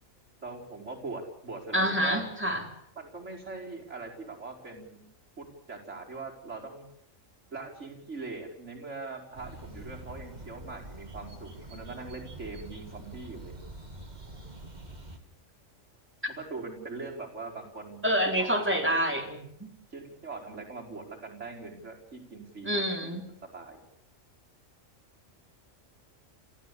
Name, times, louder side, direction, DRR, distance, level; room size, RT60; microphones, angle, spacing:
voice 1, 0.4-2.2 3.0-5.1 5.4-6.9 7.5-13.5 16.4-18.0 18.3-19.0 19.9-23.8, right 3 dB, 65° right, -1 dB, 5.3 m, -41 dB
voice 2, 1.7-2.7 18.0-19.7 22.7-23.2, equal, 10° right, 2 dB, 4.0 m, -27 dB
sound 1, 9.3-15.2, right 2 dB, 35° right, 2.5 m, -45 dB
28.0 x 15.5 x 8.5 m, 0.70 s
omnidirectional pair, 1.3 m